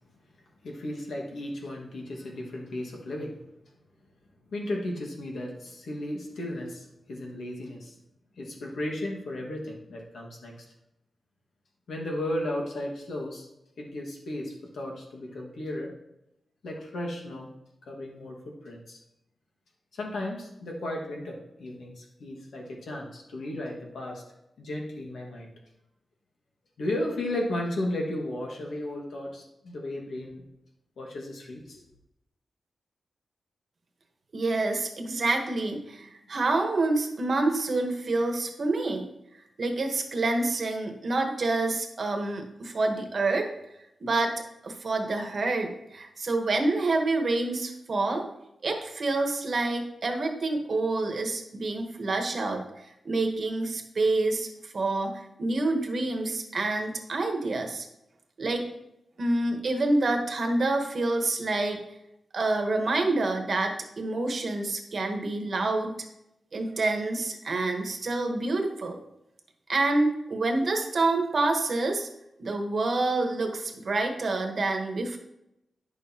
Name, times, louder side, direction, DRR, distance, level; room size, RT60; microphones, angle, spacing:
voice 1, 0.6-3.4 4.5-8.0 8.4-10.6 11.9-13.5 13.8-15.9 16.6-17.5 17.8-19.0 19.9-24.2 24.6-25.5 26.8-30.4 31.0-31.8, left 1 dB, 85° left, -1 dB, 1.7 m, -34 dB
voice 2, 34.3-39.1 39.6-43.5 44.0-44.3 44.6-48.3 48.6-52.6 53.0-57.9 58.4-58.7 59.2-61.8 62.3-66.0 66.5-69.0 69.7-72.1 72.4-75.2, right 2 dB, 50° right, 3 dB, 1.1 m, -27 dB
9.8 x 6.7 x 2.9 m, 0.86 s
wide cardioid pair, 140°, 0 cm